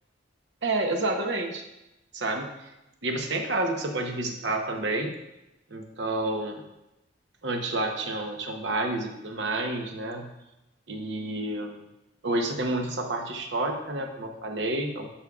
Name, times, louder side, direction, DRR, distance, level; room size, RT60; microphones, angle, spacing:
voice 1, 0.6-1.6 2.1-2.5 3.0-5.1 5.7-6.6 7.4-10.3 10.9-11.8 12.2-15.1, right 2 dB, 75° right, 3 dB, 0.9 m, -29 dB
11.5 x 5.2 x 2.4 m, 0.93 s
head